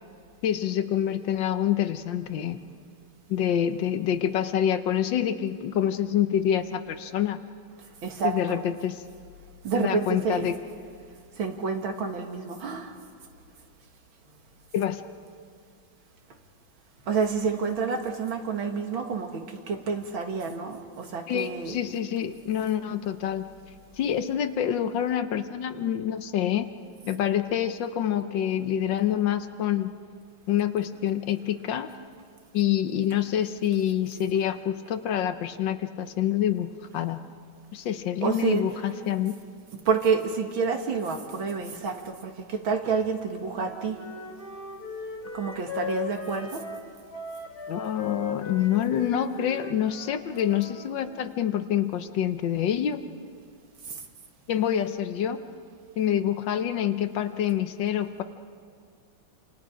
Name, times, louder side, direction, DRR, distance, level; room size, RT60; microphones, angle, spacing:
voice 1, 0.4-2.6 3.3-7.4 8.2-9.0 9.7-10.6 14.7-15.0 21.3-23.5 24.0-26.7 27.1-29.9 30.5-31.9 32.5-37.2 37.7-39.3 47.7-53.0 54.5-55.4 56.0-58.2, left 10 dB, 70° left, 10 dB, 1.5 m, -27 dB
voice 2, 8.0-8.6 9.6-10.6 11.3-13.0 17.1-21.8 38.2-39.0 39.9-44.0 45.3-46.6 53.8-54.0, right 5 dB, 75° right, 4 dB, 2.5 m, -29 dB
Wind instrument woodwind instrument, 43.5-50.9, left 5 dB, 50° left, 2.8 m, -38 dB
28.0 x 27.5 x 5.1 m, 2.2 s
omnidirectional pair, 2.2 m